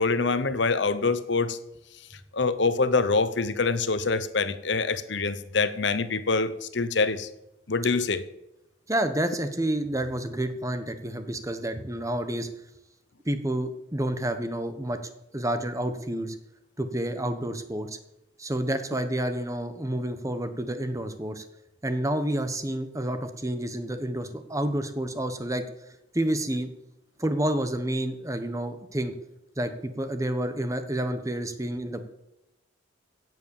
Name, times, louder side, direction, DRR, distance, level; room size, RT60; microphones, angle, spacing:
voice 1, 0.0-1.6 2.3-7.3 7.7-8.2, left 4 dB, 65° left, 13 dB, 0.9 m, -25 dB
voice 2, 8.9-12.5 13.2-15.0 15.3-16.3 16.8-18.0 18.4-21.4 21.8-25.6 26.1-26.7 27.2-29.1 29.6-32.1, right 1 dB, 15° right, 9 dB, 1.3 m, -29 dB
16.5 x 7.8 x 7.3 m, 0.90 s
head